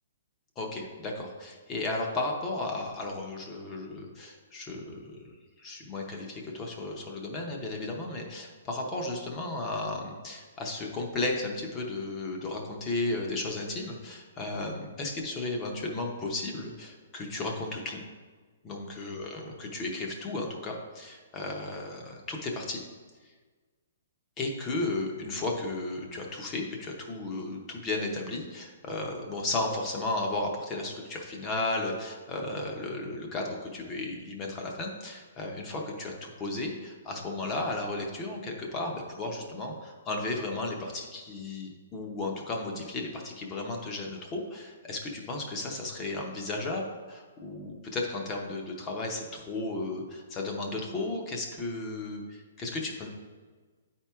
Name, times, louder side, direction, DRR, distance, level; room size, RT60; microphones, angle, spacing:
voice 1, 0.6-5.3 5.6-18.0 18.6-22.8 24.4-53.1, left 2 dB, 15° left, 1 dB, 0.7 m, -34 dB
9.2 x 4.4 x 3.5 m, 1.4 s
hypercardioid pair, 175°, 0 cm